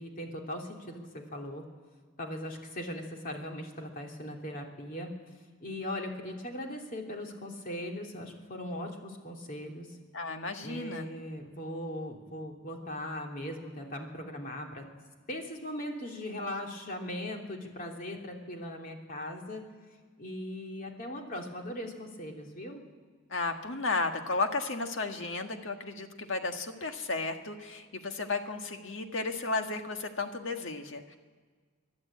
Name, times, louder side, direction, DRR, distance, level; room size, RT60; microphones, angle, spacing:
voice 1, 0.0-1.6 2.2-5.3 5.6-10.0 10.6-14.8 15.3-19.6 20.2-22.8, left 1 dB, 45° left, 1 dB, 2.9 m, -39 dB
voice 2, 10.1-11.1 23.3-31.2, left 3 dB, 75° left, 5 dB, 1.6 m, -33 dB
30.0 x 11.5 x 8.5 m, 1.5 s
head